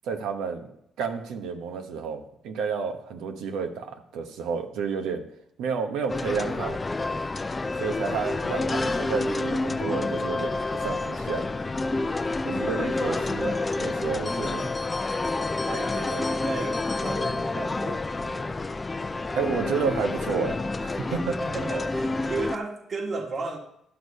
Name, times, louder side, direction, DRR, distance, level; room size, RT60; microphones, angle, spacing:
voice 1, 0.0-0.7 1.0-5.2 5.6-6.8 7.8-11.4 12.4-14.7 19.3-21.4, right 5 dB, 90° right, 5 dB, 1.1 m, -31 dB
sound 1, 6.1-22.6, left 3 dB, 25° left, 0.5 m, -29 dB
voice 2, 12.5-12.9 15.6-18.5 21.4-23.6, right 3 dB, 45° right, 3 dB, 1.7 m, -34 dB
12.0 x 6.5 x 5.4 m, 0.77 s
cardioid pair, 90°, 0 cm